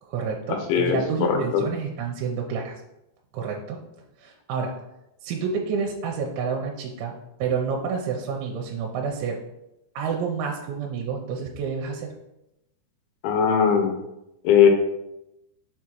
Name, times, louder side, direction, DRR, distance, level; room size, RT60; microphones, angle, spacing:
voice 1, 0.0-2.8 3.3-3.8 4.2-4.8 5.2-9.4 10.0-12.1, right 5 dB, 85° right, 1 dB, 3.0 m, -29 dB
voice 2, 0.7-1.6 13.2-14.0 14.4-14.7, left 7 dB, 85° left, 4 dB, 3.2 m, -19 dB
6.8 x 4.8 x 4.4 m, 0.90 s
omnidirectional pair, 5.4 m